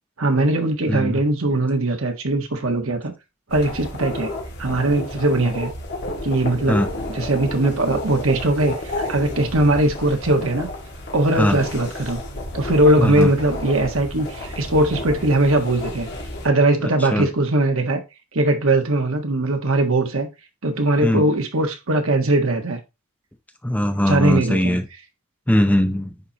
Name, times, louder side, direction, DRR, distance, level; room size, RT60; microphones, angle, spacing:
voice 1, 0.2-3.1 3.5-4.3 4.6-5.7 6.2-6.8 7.1-10.7 11.1-12.2 12.5-16.1 16.4-18.0 18.3-20.3 20.6-22.8 24.0-24.8, right 2 dB, 75° right, 1.5 m, -20 dB
voice 2, 0.9-1.2 6.7-6.9 11.4-11.6 13.0-13.3 16.8-17.3 21.0-21.2 23.6-24.9 25.5-26.1, equal, 5° left, 0.6 m, -20 dB
sound 1, 3.5-16.5, left 1 dB, 50° left, 2.2 m, -31 dB
9.9 x 4.3 x 2.9 m
head